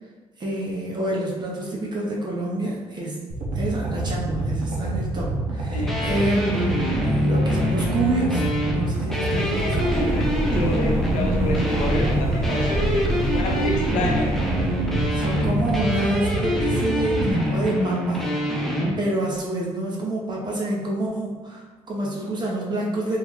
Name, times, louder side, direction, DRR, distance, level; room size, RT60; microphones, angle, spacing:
voice 1, 0.4-3.2 3.5-9.8 15.1-18.2 19.0-23.2, right 1 dB, 35° right, -3 dB, 0.9 m, -27 dB
sound 1, 3.3-17.3, right 2 dB, 90° right, 0.7 m, -27 dB
voice 2, 5.7-6.1 9.3-14.3, left 1 dB, 90° left, 0 dB, 0.7 m, -29 dB
sound 2, 5.9-18.9, equal, 5° left, 0.7 m, -26 dB
sound 3, 9.7-16.0, right 2 dB, 20° right, 0.3 m, -29 dB
3.2 x 2.4 x 3.6 m, 1.3 s
cardioid pair, 95°, 12 cm